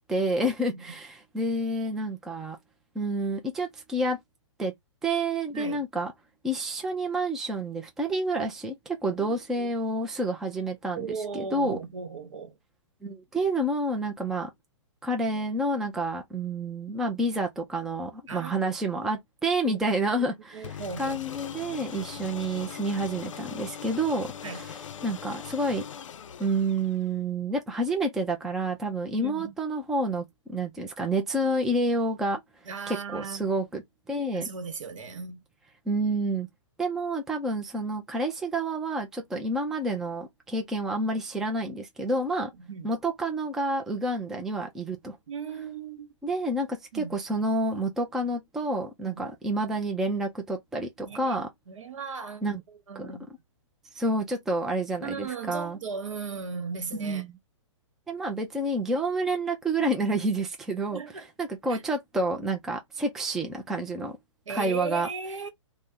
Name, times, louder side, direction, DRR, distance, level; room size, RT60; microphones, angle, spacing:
voice 1, 0.1-2.6 3.0-4.2 4.6-4.7 5.0-6.1 6.4-11.1 11.3-11.8 13.0-14.5 15.0-24.7 25.0-25.9 26.4-32.4 32.9-33.8 34.1-34.5 35.9-36.5 36.8-42.5 42.8-45.2 46.2-51.5 52.4-52.6 53.0-53.1 53.9-55.8 56.9-57.3 58.1-61.0 61.4-64.2 64.5-65.1, right 1 dB, 5° right, 0.3 m, -29 dB
voice 2, 9.2-9.8 10.9-12.6 18.3-18.6 19.6-20.1 20.5-21.2 22.1-22.2 24.4-24.6 29.1-29.5 32.6-33.6 34.3-35.4 42.5-42.9 45.3-46.1 46.9-47.2 49.0-49.3 51.0-51.4 51.7-53.3 55.0-57.2 60.9-61.3 61.7-61.8 64.5-65.5, right 5 dB, 80° right, 1.0 m, -37 dB
sound 1, 20.6-27.2, left 8 dB, 75° left, 0.5 m, -41 dB
2.6 x 2.0 x 3.5 m
hypercardioid pair, 140°, 16 cm